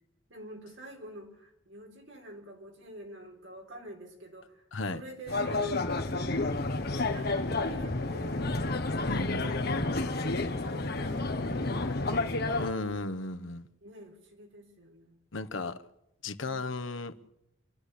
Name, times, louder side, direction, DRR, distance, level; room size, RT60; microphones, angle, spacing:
voice 1, 0.3-4.6 4.9-6.4 6.9-8.7 9.3-12.3 13.8-15.2 16.5-16.9, right 1 dB, 75° right, 2 dB, 4.1 m, -47 dB
voice 2, 4.7-5.0 9.1-9.4 12.6-13.6 15.3-15.8 16.2-17.1, left 3 dB, 80° left, 10 dB, 1.0 m, -34 dB
sound 1, 5.3-12.7, left 2 dB, 55° left, 1.4 m, -30 dB
28.0 x 12.0 x 8.3 m, 0.84 s
head